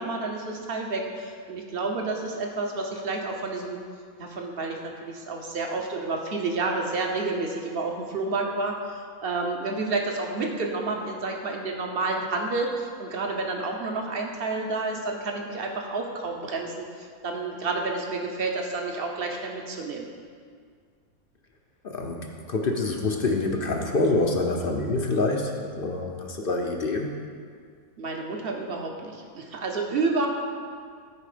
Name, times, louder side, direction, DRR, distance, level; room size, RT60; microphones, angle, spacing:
voice 1, 0.0-3.8 4.2-20.1 28.0-30.3, right 3 dB, 45° right, 1 dB, 1.1 m, -30 dB
voice 2, 21.8-27.2, left 2 dB, 50° left, 2 dB, 0.8 m, -26 dB
13.0 x 4.8 x 5.0 m, 2.1 s
omnidirectional pair, 1.5 m